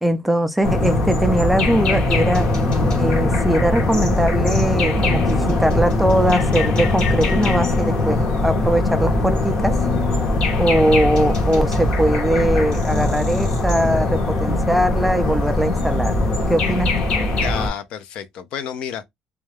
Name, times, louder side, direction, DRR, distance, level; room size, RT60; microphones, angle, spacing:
voice 1, 0.0-2.5 3.0-9.8 10.6-16.2 16.5-16.9, right 1 dB, ahead, 0.3 m, -21 dB
sound 1, 0.6-17.7, left 2 dB, 45° left, 0.9 m, -20 dB
sound 2, 2.1-17.7, right 1 dB, 40° right, 0.7 m, -34 dB
sound 3, 2.8-3.4 5.0-5.6 7.3-7.9 9.7-10.3, left 9 dB, 80° left, 0.9 m, -30 dB
voice 2, 17.3-19.1, left 8 dB, 60° left, 0.5 m, -30 dB
2.3 x 2.2 x 3.1 m
cardioid pair, 165°, 2 cm